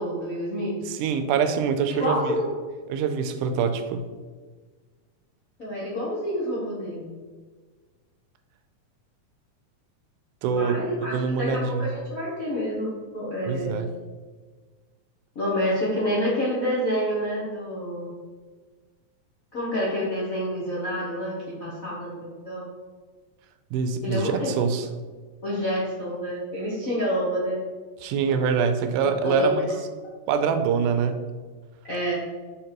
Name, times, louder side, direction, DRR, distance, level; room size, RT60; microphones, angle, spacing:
voice 1, 0.0-0.8 2.0-2.5 5.6-7.0 10.5-13.8 15.3-18.1 19.5-22.1 22.4-22.7 24.0-24.5 25.4-27.6 28.3-28.4 29.0-29.5 31.9-32.1, equal, 60° left, -8 dB, 0.9 m, -28 dB
voice 2, 0.9-2.4 2.9-4.0 10.4-11.9 13.5-13.9 23.7-24.9 28.0-29.7 30.3-31.2, right 6 dB, 85° right, 8 dB, 2.1 m, -25 dB
5.2 x 4.5 x 4.4 m, 1.4 s
omnidirectional pair, 3.5 m